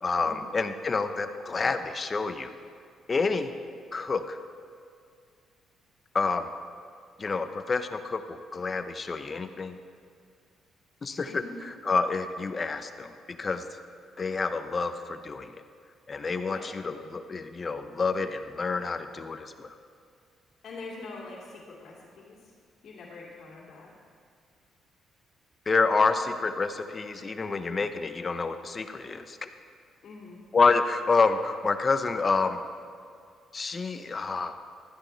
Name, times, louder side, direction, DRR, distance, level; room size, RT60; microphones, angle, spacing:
voice 1, 0.0-2.5 3.1-3.5 3.9-4.4 6.1-6.5 7.2-9.8 11.0-11.4 11.8-13.6 14.2-15.5 16.1-19.8 25.7-29.5 30.5-32.6 33.5-34.6, left 4 dB, 35° left, 9 dB, 0.8 m, -28 dB
voice 2, 11.3-11.6 16.5-16.7 20.6-22.5 22.8-23.9 30.0-30.4, left 3 dB, 60° left, -6 dB, 2.6 m, -44 dB
15.5 x 13.0 x 3.4 m, 2.3 s
cardioid pair, 90°, 0 cm